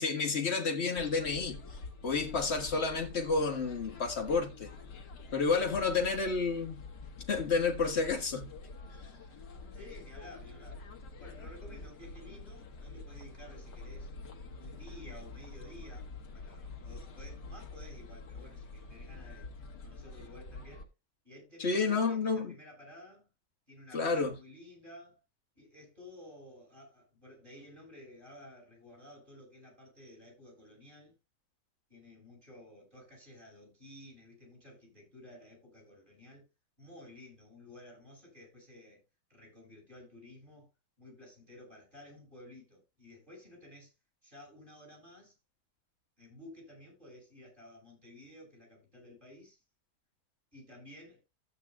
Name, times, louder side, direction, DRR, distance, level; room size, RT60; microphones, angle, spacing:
voice 1, 0.0-1.6 2.0-4.7 5.3-6.8 7.3-8.5 21.6-22.5 23.9-24.3, left 4 dB, 40° left, 1.6 m, -30 dB
sound 1, 1.0-20.9, left 3 dB, 80° left, 2.0 m, -47 dB
voice 2, 9.7-10.9 11.2-14.1 14.6-19.5 19.8-20.9 21.2-23.3 23.7-25.2 25.6-31.1 31.9-36.4 36.8-39.0 39.3-40.7 41.0-43.9 44.2-45.3 46.2-49.6 50.5-51.2, left 1 dB, 30° right, 6.1 m, -53 dB
14.5 x 8.4 x 2.3 m
omnidirectional pair, 1.8 m